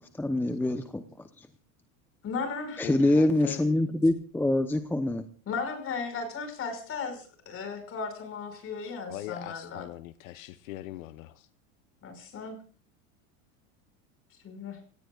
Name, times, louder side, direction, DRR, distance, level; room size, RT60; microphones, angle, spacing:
voice 1, 0.2-1.0 1.4-1.5 2.8-5.2, left 1 dB, 5° left, 0.8 m, -25 dB
voice 2, 2.2-2.9 5.5-9.8 12.0-12.6 14.4-14.8, left 4 dB, 35° left, 5.8 m, -36 dB
voice 3, 2.8-3.6 9.1-11.5, left 15 dB, 85° left, 1.0 m, -41 dB
27.5 x 17.5 x 2.4 m
supercardioid pair, 130°, 40 cm